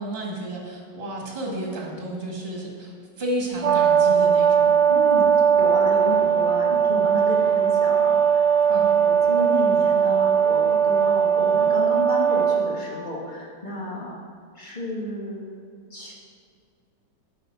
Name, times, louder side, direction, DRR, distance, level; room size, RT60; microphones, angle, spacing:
voice 1, 0.0-4.7 8.7-8.9, right 1 dB, 30° right, -2 dB, 2.2 m, -32 dB
Brass instrument, 3.6-12.7, right 7 dB, 65° right, 1.6 m, -19 dB
voice 2, 4.9-5.3 5.6-14.2 14.6-16.1, left 1 dB, 25° left, -4 dB, 1.7 m, -32 dB
9.2 x 6.9 x 5.8 m, 2.2 s
omnidirectional pair, 2.0 m